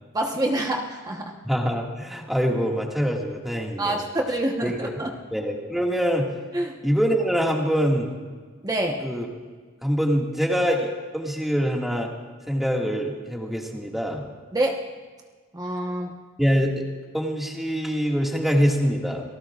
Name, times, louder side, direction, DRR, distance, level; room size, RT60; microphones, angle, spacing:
voice 1, 0.1-1.3 3.8-5.1 6.5-6.7 8.6-9.0 14.5-14.8 15.5-16.1, right 1 dB, 20° right, 1 dB, 1.1 m, -26 dB
voice 2, 1.4-4.0 4.6-5.0 5.3-6.3 6.8-8.1 9.0-9.3 9.8-10.9 11.1-12.1 12.5-14.2 16.4-16.8 17.1-19.2, equal, ahead, -1 dB, 2.0 m, -24 dB
29.0 x 19.0 x 2.5 m, 1.5 s
head